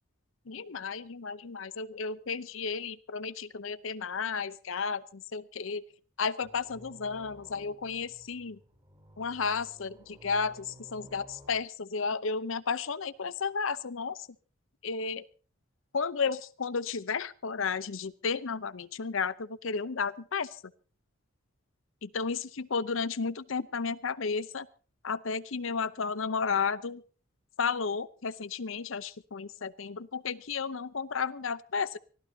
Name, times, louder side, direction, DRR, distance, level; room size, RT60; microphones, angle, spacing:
voice 1, 0.5-5.8 6.2-8.6 9.2-14.2 14.8-15.2 15.9-20.6 22.0-24.7 25.0-27.0 27.6-32.0, left 5 dB, 75° left, 16 dB, 0.7 m, -33 dB
sound 1, 6.4-11.6, equal, 20° right, 5.0 m, -54 dB
24.5 x 16.0 x 2.8 m, 0.39 s
head